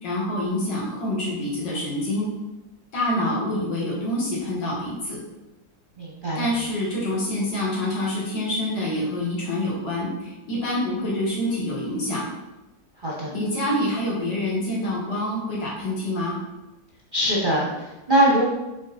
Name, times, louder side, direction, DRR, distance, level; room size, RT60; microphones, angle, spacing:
voice 1, 0.0-2.3 2.9-5.2 6.4-12.3 13.3-16.4, left 1 dB, 70° left, -5 dB, 2.4 m, -26 dB
voice 2, 6.0-6.5 13.0-13.3 17.1-18.5, right 1 dB, 35° right, -4 dB, 0.8 m, -22 dB
5.9 x 4.0 x 4.1 m, 1.0 s
omnidirectional pair, 2.1 m